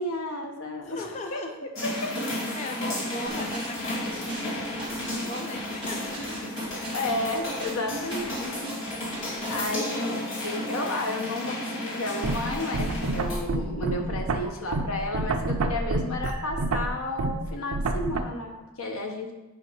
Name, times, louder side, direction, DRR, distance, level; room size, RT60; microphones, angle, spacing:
voice 1, 0.0-1.4 2.0-2.1 6.1-19.3, left 1 dB, 80° left, 2 dB, 1.1 m, -32 dB
voice 2, 0.8-1.7 2.3-4.6 5.1-6.5, left 2 dB, 30° left, 3 dB, 0.4 m, -37 dB
sound 1, 1.8-13.4, left 1 dB, 60° left, 1.8 m, -33 dB
sound 2, 3.3-9.8, right 1 dB, 20° right, 1.4 m, -41 dB
sound 3, 12.2-18.2, right 2 dB, 90° right, 0.5 m, -28 dB
9.2 x 5.3 x 3.1 m, 1.1 s
head